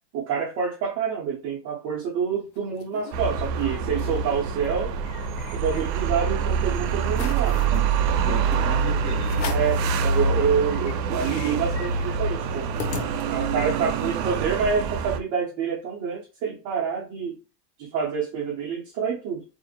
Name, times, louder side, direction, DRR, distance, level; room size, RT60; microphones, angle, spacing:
voice 1, 0.1-4.9 5.5-7.6 9.5-12.7 13.3-17.4 17.8-19.4, right 6 dB, 30° right, -4 dB, 0.5 m, -27 dB
sound 1, 2.3-3.1 3.6-3.7 3.9-4.2 4.6-6.2 6.6-6.7 7.1-7.8 8.5-8.7 9.2-9.8 10.3-10.4 10.6-13.6, left 6 dB, 90° left, 0.7 m, -38 dB
sound 2, 3.1-15.2, right 5 dB, 80° right, 0.5 m, -25 dB
voice 2, 8.3-10.0 13.8-14.3, left 4 dB, 25° left, 2 dB, 0.8 m, -37 dB
2.5 x 2.1 x 2.7 m, 0.33 s
supercardioid pair, 125°, 50 cm